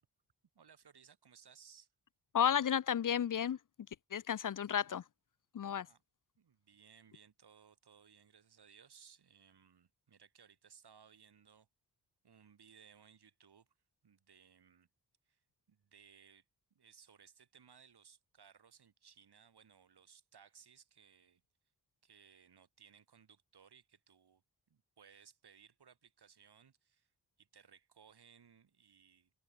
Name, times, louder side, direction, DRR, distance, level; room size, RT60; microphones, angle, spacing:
voice 1, 0.5-1.9 5.8-6.0 6.4-11.7 12.2-13.7 14.0-14.9 15.3-15.4 15.7-16.4 16.7-21.4 22.0-24.4 24.7-27.1 27.4-29.3, right 7 dB, 70° right, 4.4 m, -63 dB
voice 2, 2.3-3.6 4.1-5.0 5.5-5.9, left 8 dB, 50° left, 0.6 m, -32 dB
wide cardioid pair, 155°, 40 cm